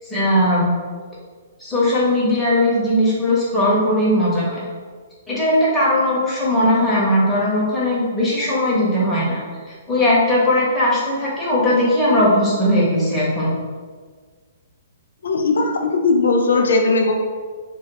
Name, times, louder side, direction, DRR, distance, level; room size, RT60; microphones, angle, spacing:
voice 1, 0.1-0.7 1.6-4.6 5.3-13.5, left 1 dB, 5° left, -9 dB, 1.1 m, -18 dB
voice 2, 15.2-17.1, left 3 dB, 75° left, 4 dB, 0.4 m, -18 dB
2.6 x 2.2 x 3.8 m, 1.5 s
hypercardioid pair, 130°, 0 cm